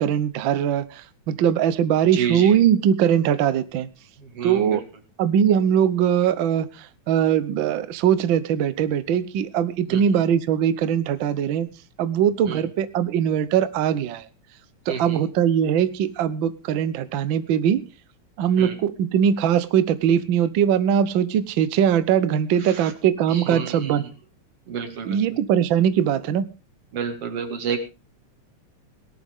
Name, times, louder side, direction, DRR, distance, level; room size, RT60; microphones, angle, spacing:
voice 1, 0.0-3.9 4.4-4.8 5.2-11.7 12.0-14.3 14.9-17.8 18.4-24.0 25.0-26.5, right 9 dB, 90° right, 14 dB, 1.0 m, -21 dB
voice 2, 2.1-2.6 4.2-4.8 9.9-10.2 12.5-12.6 14.9-15.2 18.6-18.8 22.6-22.9 23.3-24.1 24.7-25.4 26.9-27.8, right 7 dB, 55° right, 8 dB, 2.8 m, -30 dB
18.0 x 12.5 x 3.6 m, 0.30 s
omnidirectional pair, 3.4 m